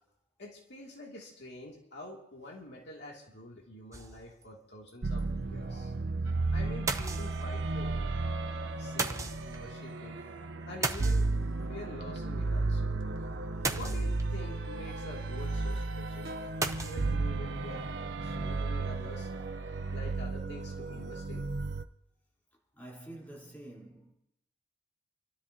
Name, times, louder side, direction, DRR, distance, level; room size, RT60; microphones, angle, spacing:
voice 1, 0.4-5.9 6.5-8.1 8.8-10.2 10.7-11.3 11.7-12.9 13.7-16.3 16.8-17.9 18.2-19.3 19.9-21.5, left 1 dB, 60° left, 2.4 m, -46 dB
sound 1, 3.9-4.5 4.9-5.0 5.2-5.3 6.9-7.7 9.0-9.6 10.8-11.7 13.6-14.4 16.6-17.1, right 3 dB, 15° right, 0.7 m, -35 dB
sound 2, 5.0-21.8, right 3 dB, 55° right, 0.6 m, -34 dB
sound 3, 6.2-20.1, right 4 dB, 70° right, 1.1 m, -46 dB
voice 2, 22.7-24.1, right 1 dB, 10° left, 3.5 m, -47 dB
28.5 x 12.5 x 2.8 m
head